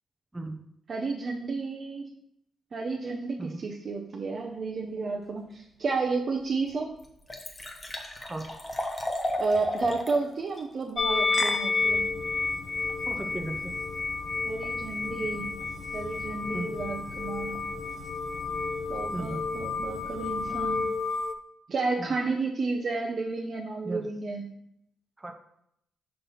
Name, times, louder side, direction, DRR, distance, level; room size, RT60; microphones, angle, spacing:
voice 1, 0.9-2.1 2.7-6.9 9.4-12.0 14.5-15.5 15.9-17.6 18.9-20.9 21.7-24.4, right 3 dB, 50° right, 1 dB, 0.7 m, -31 dB
Liquid, 6.1-6.2 6.7-6.8 7.0-10.2 10.6-10.7, left 1 dB, 20° left, 1.1 m, -34 dB
sound 1, 11.0-21.3, left 4 dB, 45° left, 0.6 m, -31 dB
sound 2, 11.8-20.8, left 3 dB, 80° left, 0.9 m, -44 dB
voice 2, 13.1-13.7 16.5-16.7 19.1-19.4 22.0-22.1 23.8-24.0 25.2-25.3, right 2 dB, 15° right, 3 dB, 0.8 m, -36 dB
5.7 x 5.4 x 4.1 m, 0.76 s
cardioid pair, 95°, 0 cm